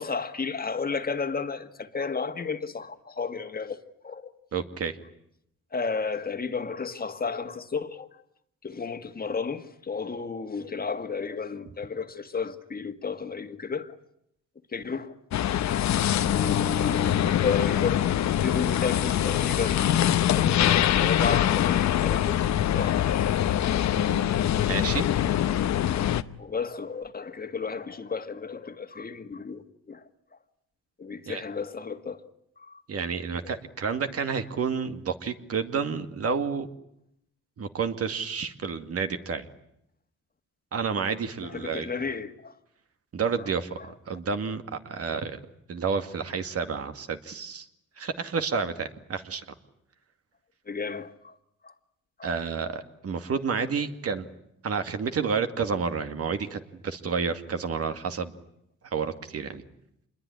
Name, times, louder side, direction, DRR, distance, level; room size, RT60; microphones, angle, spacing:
voice 1, 0.0-4.3 5.7-8.1 8.6-14.0 14.7-15.2 15.7-15.9 16.2-18.1 18.4-22.4 22.7-23.0 26.4-30.1 31.0-32.2 32.6-32.8 33.4-33.5 33.9-34.0 41.5-42.6 43.4-43.5 43.8-43.9 50.7-51.4 51.6-51.7 52.2-52.3, left 5 dB, 30° left, 1.9 m, -33 dB
voice 2, 4.5-5.0 24.0-24.3 24.7-25.1 31.3-31.4 32.9-36.7 37.6-39.5 40.7-41.9 43.1-43.7 44.1-45.4 45.7-47.7 48.0-49.4 52.2-54.3 54.6-58.3 58.8-59.6, right 5 dB, 50° right, 2.3 m, -30 dB
sound 1, 15.3-26.2, left 11 dB, 65° left, 1.0 m, -24 dB
26.5 x 21.5 x 9.9 m
cardioid pair, 90°, 30 cm